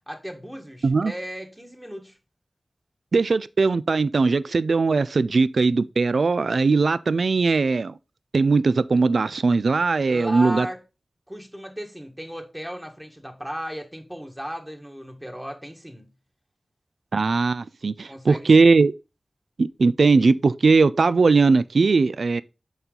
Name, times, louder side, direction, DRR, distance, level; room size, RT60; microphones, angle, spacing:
voice 1, 0.1-2.2 10.1-10.8 11.3-16.1 18.1-18.7, equal, 10° right, 1.6 m, -35 dB
voice 2, 3.1-8.0 8.3-10.7 17.1-18.9 19.6-22.4, right 4 dB, 85° right, 0.3 m, -19 dB
6.9 x 4.1 x 3.8 m
wide cardioid pair, 65°, 0 cm